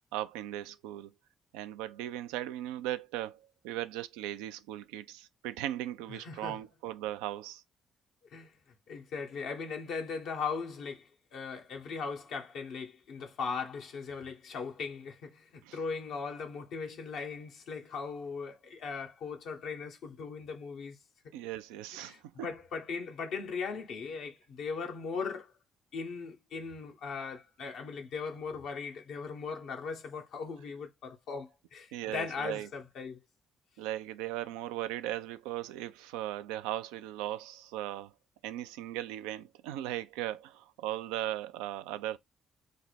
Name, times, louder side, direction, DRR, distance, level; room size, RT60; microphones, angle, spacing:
voice 1, 0.1-1.1 1.5-7.6 15.6-15.8 21.3-22.5 31.9-32.7 33.8-38.1 38.4-42.2, right 13 dB, 80° right, 0.3 m, -38 dB
voice 2, 6.1-6.6 8.3-8.5 8.9-21.0 22.0-25.5 25.9-33.2, left 5 dB, 70° left, 0.7 m, -39 dB
3.3 x 2.1 x 4.1 m
hypercardioid pair, 45°, 0 cm